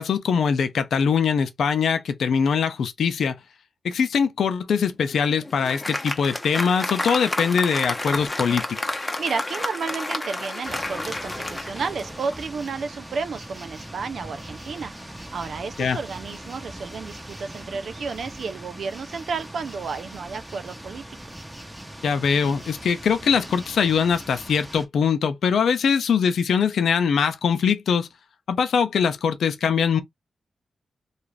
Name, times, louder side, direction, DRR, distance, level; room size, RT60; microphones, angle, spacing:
voice 1, 0.0-3.4 3.8-9.0 15.8-16.0 22.0-28.1 28.5-30.0, left 6 dB, 85° left, 0.5 m, -22 dB
Applause, 5.0-12.6, left 2 dB, 25° left, 0.7 m, -30 dB
voice 2, 9.2-14.9 15.3-21.0, right 5 dB, 75° right, 0.4 m, -32 dB
sound 1, 10.6-24.9, right 1 dB, 15° right, 1.0 m, -40 dB
2.4 x 2.4 x 3.1 m
cardioid pair, 55°, 0 cm